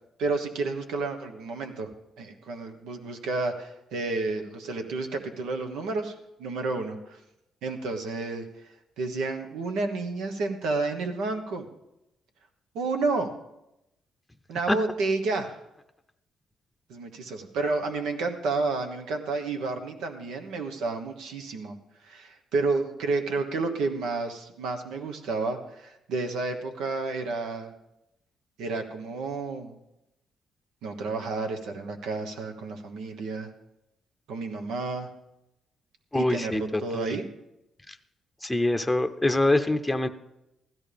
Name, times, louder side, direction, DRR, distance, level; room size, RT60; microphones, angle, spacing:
voice 1, 0.2-1.9 2.2-7.2 7.6-8.5 9.0-11.7 12.7-13.3 14.5-15.6 16.9-21.8 22.0-27.7 28.6-29.8 30.8-33.5 34.3-35.1 36.1-37.2, right 3 dB, 85° right, 5 dB, 1.3 m, -30 dB
voice 2, 36.1-36.6 36.9-37.2 37.9-38.0 38.4-40.1, left 2 dB, 10° left, 8 dB, 0.7 m, -24 dB
15.5 x 13.5 x 3.5 m, 0.88 s
cardioid pair, 90°, 0 cm